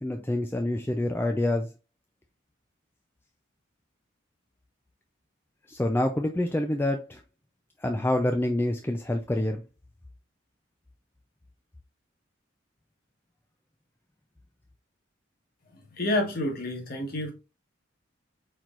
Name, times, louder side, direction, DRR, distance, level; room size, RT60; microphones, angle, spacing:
voice 1, 0.0-1.7 5.7-7.2 7.8-9.6, left 1 dB, 10° left, 0.3 m, -27 dB
voice 2, 16.0-17.3, left 1 dB, 45° left, 1.3 m, -28 dB
4.5 x 4.4 x 2.4 m
head